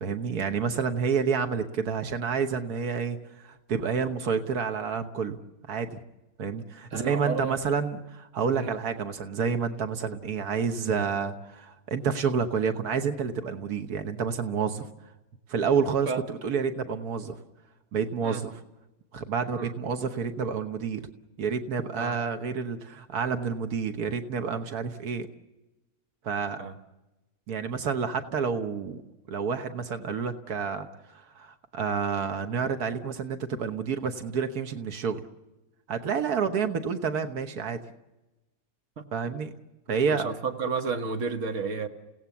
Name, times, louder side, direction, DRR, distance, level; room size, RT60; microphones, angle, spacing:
voice 1, 0.0-5.4 5.7-6.0 6.4-14.9 15.5-17.4 17.9-18.6 19.1-21.0 21.4-25.3 26.2-26.6 27.5-29.0 29.3-35.2 35.9-37.8 39.1-39.5 39.9-40.3, right 6 dB, 90° right, 1.7 m, -29 dB
voice 2, 6.9-7.6 8.5-8.8 16.1-16.2 18.2-18.5 19.5-19.8 22.0-22.2 26.6-26.7 39.0-39.1 40.1-41.9, right 4 dB, 55° right, 1.9 m, -32 dB
29.5 x 17.5 x 7.2 m
omnidirectional pair, 1.6 m